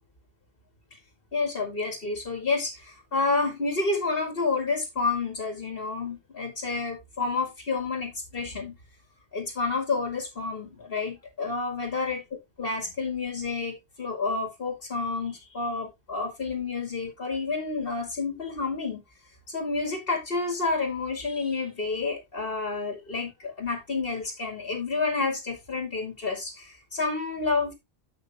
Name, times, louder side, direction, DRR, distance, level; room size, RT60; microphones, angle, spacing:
voice 1, 1.3-8.8 9.3-12.2 12.6-19.0 19.5-27.7, left 4 dB, 60° left, 2.3 m, -29 dB
8.9 x 5.8 x 3.4 m
omnidirectional pair, 1.0 m